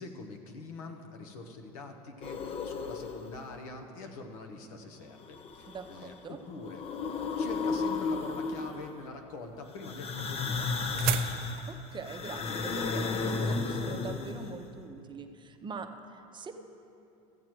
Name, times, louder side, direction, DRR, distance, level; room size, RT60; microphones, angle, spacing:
voice 1, 0.0-6.8 7.3-11.1, left 3 dB, 80° left, 4 dB, 1.2 m, -45 dB
sound 1, 2.2-3.5 5.2-6.1 6.5-9.0 9.8-14.7, left 4 dB, 35° left, 0.7 m, -34 dB
voice 2, 5.7-6.4 11.7-16.5, right 5 dB, 25° right, 6 dB, 0.7 m, -43 dB
sound 2, 9.3-14.5, right 12 dB, 60° right, 0.5 m, -38 dB
14.0 x 7.5 x 4.6 m, 2.7 s
supercardioid pair, 95°, 18 cm